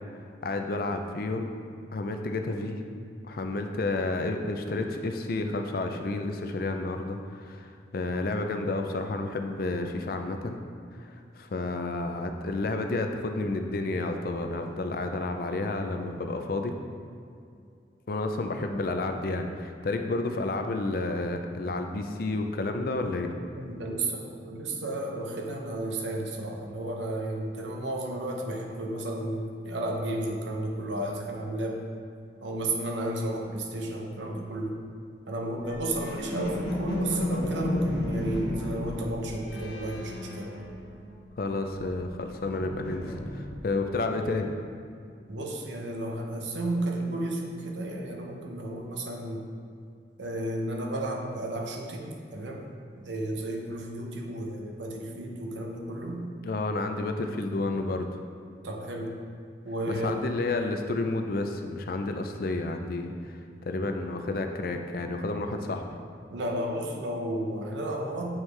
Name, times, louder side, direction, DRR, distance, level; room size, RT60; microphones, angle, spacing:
voice 1, 0.4-1.5 1.9-2.8 3.3-10.6 11.0-11.1 11.4-16.7 18.1-23.3 41.4-44.5 56.4-58.1 59.9-65.8, left 2 dB, 50° left, 5 dB, 0.4 m, -30 dB
voice 2, 23.5-31.8 32.4-34.8 35.3-40.5 45.3-49.4 50.2-52.6 53.0-56.3 58.6-59.1 59.6-60.2 66.3-68.4, right 1 dB, 75° right, 1 dB, 0.7 m, -33 dB
sound 1, 35.6-41.2 41.5-43.8, left 1 dB, 65° left, 1.2 m, -34 dB
7.2 x 4.6 x 3.3 m, 2.4 s
head